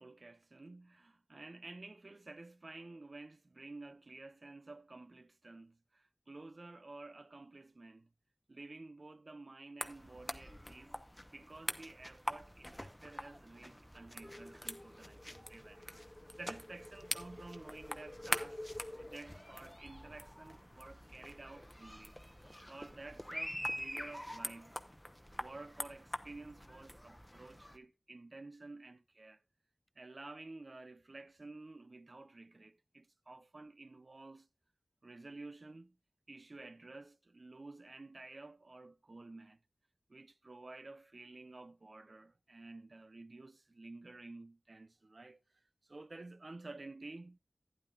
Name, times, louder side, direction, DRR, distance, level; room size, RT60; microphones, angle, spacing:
voice 1, 0.0-8.1 8.5-11.0 11.3-15.8 16.4-22.1 22.7-24.8 25.4-29.4 30.0-34.5 35.0-35.9 36.3-39.6 40.1-45.4 45.9-47.4, right 2 dB, 60° right, 0.5 m, -52 dB
sound 1, 9.8-27.8, equal, 5° left, 0.8 m, -45 dB
sound 2, 14.2-20.6, left 1 dB, 25° left, 1.7 m, -52 dB
12.0 x 10.0 x 2.4 m
wide cardioid pair, 60°, 0 cm